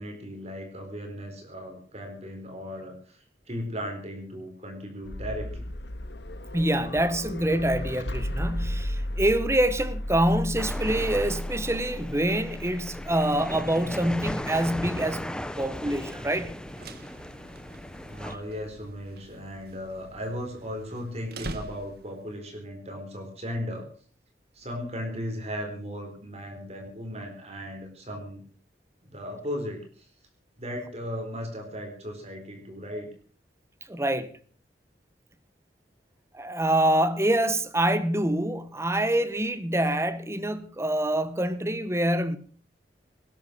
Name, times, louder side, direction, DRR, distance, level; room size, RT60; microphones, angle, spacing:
voice 1, 0.0-5.6 18.0-23.9 24.5-28.4 29.0-30.1 30.6-33.1, equal, 35° right, 4.3 m, -36 dB
sound 1, 5.0-21.0, left 1 dB, 70° left, 1.7 m, -36 dB
voice 2, 6.5-15.3 15.6-16.5 18.3-18.4 33.9-34.3 36.3-42.4, right 1 dB, 15° right, 1.3 m, -26 dB
sound 2, 10.6-18.3, equal, 5° left, 0.8 m, -37 dB
sound 3, 16.5-22.3, right 2 dB, 60° right, 1.7 m, -44 dB
19.5 x 10.5 x 6.2 m
head